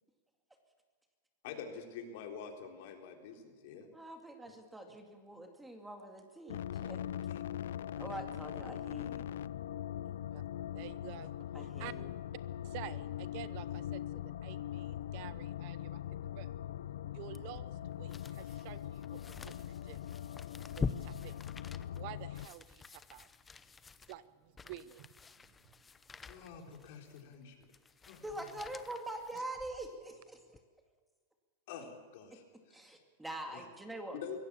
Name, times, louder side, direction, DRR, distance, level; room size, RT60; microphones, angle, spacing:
voice 1, 1.4-3.9 7.3-7.4 26.2-27.7 28.0-28.6 31.7-32.8 33.5-33.7 34.2-34.4, left 6 dB, 55° left, 3 dB, 4.0 m, -47 dB
voice 2, 3.9-7.1 8.0-9.3 10.0-10.1 11.5-12.1 28.2-30.4 32.7-34.2, right 1 dB, 5° right, 4 dB, 2.3 m, -44 dB
sound 1, 6.5-22.5, left 11 dB, 85° left, 0.5 m, -41 dB
voice 3, 10.7-11.3 11.6-11.9 12.6-16.0 16.3-16.5 17.1-19.2 19.4-20.0 20.8-21.4 21.9-23.3 24.1-25.1, right 15 dB, 45° right, 16 dB, 0.8 m, -49 dB
sound 2, 17.3-30.0 30.5-30.6, left 5 dB, 10° left, 0.7 m, -46 dB
23.5 x 17.0 x 7.2 m, 1.5 s
supercardioid pair, 155°, 0 cm